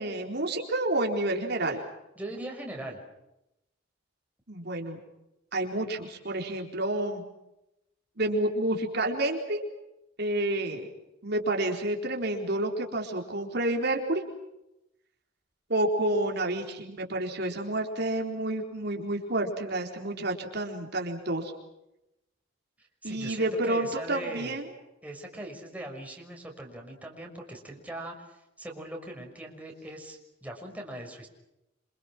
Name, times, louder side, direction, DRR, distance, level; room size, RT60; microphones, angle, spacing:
voice 1, 0.0-1.8 4.5-5.0 5.5-7.2 8.2-9.6 10.2-10.9 11.2-14.2 15.7-21.5 23.0-24.7, right 1 dB, 60° right, 2 dB, 4.2 m, -29 dB
voice 2, 2.2-3.0 22.8-24.6 25.0-31.3, right 1 dB, 10° right, 1 dB, 6.1 m, -40 dB
28.0 x 27.0 x 6.1 m, 0.89 s
head